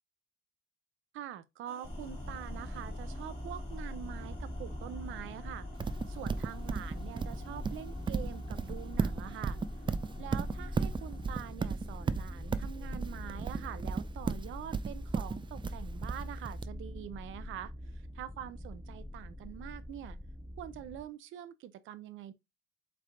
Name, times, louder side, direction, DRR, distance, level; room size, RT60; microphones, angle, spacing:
voice 1, 1.1-5.7 6.1-9.6 10.2-20.2 20.6-22.3, right 11 dB, 80° right, 0.6 m, -45 dB
sound 1, 1.7-11.5, left 2 dB, 30° left, 2.4 m, -56 dB
sound 2, 1.8-21.0, left 1 dB, 5° left, 1.0 m, -42 dB
Livestock farm animals working animals, 5.8-16.6, right 5 dB, 25° right, 0.4 m, -34 dB
4.2 x 3.4 x 3.7 m
cardioid pair, 90°, 20 cm